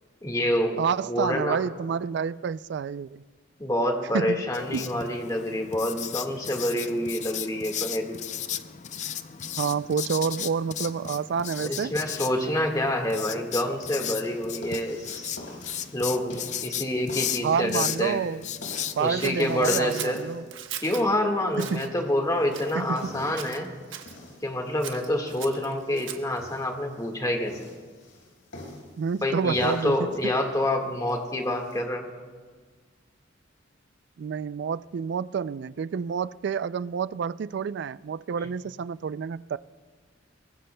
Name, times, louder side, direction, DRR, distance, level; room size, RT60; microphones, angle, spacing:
voice 1, 0.2-0.8 1.1-1.6 3.6-8.2 11.6-15.4 15.9-18.2 19.0-20.2 20.8-23.7 24.4-27.6 29.2-32.1, left 1 dB, 20° left, 1.6 m, -27 dB
voice 2, 0.8-3.2 4.1-4.9 9.6-12.0 17.4-18.5 19.0-20.4 21.6-21.9 22.7-23.2 29.0-30.1 34.2-39.6, right 6 dB, 60° right, 0.3 m, -29 dB
Writing, 4.5-19.8, left 9 dB, 40° left, 0.5 m, -35 dB
sound 1, 13.8-31.8, left 1 dB, 85° left, 4.9 m, -48 dB
Scissors, 19.2-21.1 21.5-21.9 22.5-23.1 23.4-24.2 24.8-26.4, right 9 dB, 85° right, 1.1 m, -39 dB
23.0 x 20.0 x 2.2 m
head